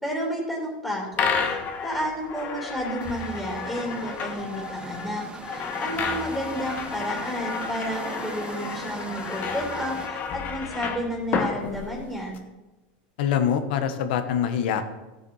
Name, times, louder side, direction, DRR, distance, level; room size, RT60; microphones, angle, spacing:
voice 1, 0.0-12.4, equal, 5° left, -2 dB, 3.0 m, -31 dB
sound 1, 1.1-12.4, left 5 dB, 35° left, 1.2 m, -31 dB
sound 2, 3.0-10.1, right 4 dB, 20° right, 0.7 m, -42 dB
voice 2, 13.2-14.8, left 8 dB, 75° left, 9 dB, 1.2 m, -24 dB
15.0 x 7.0 x 4.8 m, 1.1 s
supercardioid pair, 135°, 5 cm